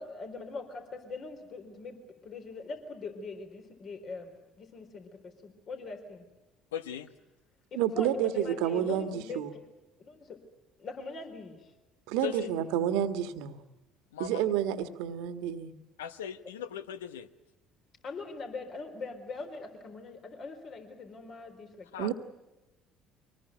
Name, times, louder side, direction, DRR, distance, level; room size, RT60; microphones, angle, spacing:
voice 1, 0.0-6.2 7.7-9.4 10.0-10.4 10.8-11.7 12.1-12.5 18.0-22.1, left 3 dB, 50° left, 5 dB, 4.0 m, -42 dB
voice 2, 6.7-7.1 12.2-12.5 14.1-14.4 16.0-17.3 21.9-22.1, left 8 dB, 85° left, 12 dB, 1.0 m, -38 dB
voice 3, 7.7-9.5 12.1-13.6 14.2-15.7 22.0-22.1, right 10 dB, 70° right, 10 dB, 1.6 m, -29 dB
24.5 x 20.0 x 9.2 m, 1.0 s
hypercardioid pair, 60°, 0 cm